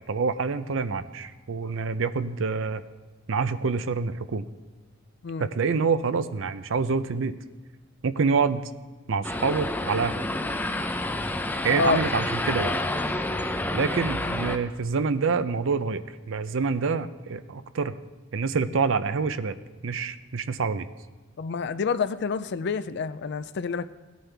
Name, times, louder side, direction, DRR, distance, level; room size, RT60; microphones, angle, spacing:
voice 1, 0.1-2.8 3.3-4.4 5.4-7.3 8.0-8.6 9.1-10.2 11.6-12.7 13.7-17.9 18.3-19.6 19.8-20.9, right 5 dB, 65° right, 0.5 m, -26 dB
sound 1, 9.2-14.6, left 1 dB, 10° left, 0.5 m, -29 dB
voice 2, 21.4-23.9, left 5 dB, 55° left, 0.4 m, -28 dB
16.5 x 9.3 x 3.4 m
head